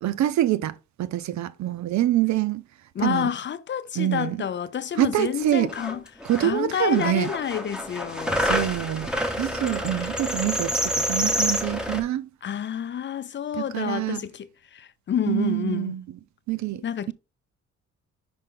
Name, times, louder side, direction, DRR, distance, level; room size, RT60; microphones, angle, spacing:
voice 1, 0.0-2.6 3.0-3.3 4.0-4.4 5.0-5.7 6.2-7.3 8.4-9.1 9.4-12.3 13.6-14.2 15.3-16.0 16.5-17.1, right 13 dB, 65° right, 0.6 m, -25 dB
voice 2, 2.9-6.0 6.4-8.5 10.0-10.1 12.4-15.9 16.8-17.1, left 9 dB, 40° left, 0.5 m, -29 dB
sound 1, 5.4-5.5 5.7-6.5 6.8-12.0, equal, 5° right, 1.2 m, -28 dB
5.4 x 5.2 x 3.7 m
cardioid pair, 90°, 30 cm